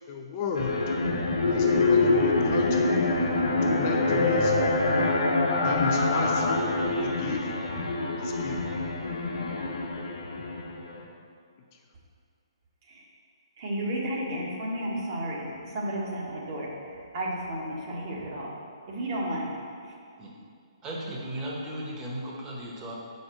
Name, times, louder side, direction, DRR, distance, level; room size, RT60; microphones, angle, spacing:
voice 1, 0.1-0.8 1.5-2.9 3.7-4.6 5.6-6.5 7.0-7.5 8.2-8.7, left 5 dB, 30° left, 2 dB, 0.5 m, -34 dB
sound 1, 0.5-11.0, left 2 dB, 80° left, 1.2 m, -25 dB
voice 2, 13.6-18.5 18.9-19.9, right 1 dB, 45° right, -4 dB, 1.7 m, -33 dB
voice 3, 20.8-22.9, right 1 dB, 20° right, -3 dB, 1.3 m, -36 dB
5.2 x 5.1 x 6.2 m, 2.3 s
hypercardioid pair, 145°, 3 cm